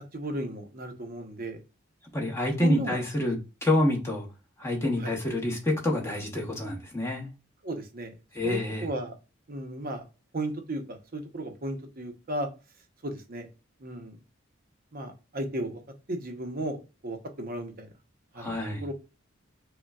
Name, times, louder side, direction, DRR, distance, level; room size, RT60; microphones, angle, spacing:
voice 1, 0.1-1.6 2.6-3.0 5.0-5.1 7.6-8.2 8.4-9.2 9.5-10.0 10.3-12.5 13.0-13.5 13.8-14.2 14.9-15.8 16.1-17.9 18.3-18.5 18.8-18.9, right 1 dB, 45° right, 0.7 m, -34 dB
voice 2, 2.1-4.3 4.6-7.3 8.3-8.9 18.4-18.8, left 1 dB, 15° left, 0.9 m, -27 dB
5.1 x 2.2 x 2.3 m
head